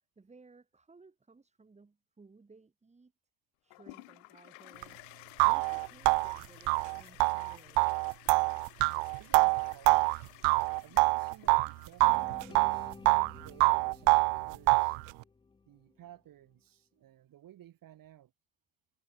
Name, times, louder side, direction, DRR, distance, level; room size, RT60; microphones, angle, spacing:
voice 1, 0.2-3.1 3.6-5.0 5.4-7.8, right 4 dB, 15° right, 3.7 m, -59 dB
Toilet flush, 3.7-12.9, left 29 dB, 80° left, 1.5 m, -55 dB
sound 1, 4.8-4.9 5.4-11.7 12.0-13.3 13.6-15.0, right 35 dB, 80° right, 0.6 m, -25 dB
voice 2, 8.8-10.3 10.8-12.9 13.4-15.0 15.7-18.3, right 12 dB, 45° right, 3.2 m, -56 dB
sound 2, 12.0-16.1, left 4 dB, 10° left, 0.7 m, -52 dB
cardioid pair, 130°, 45 cm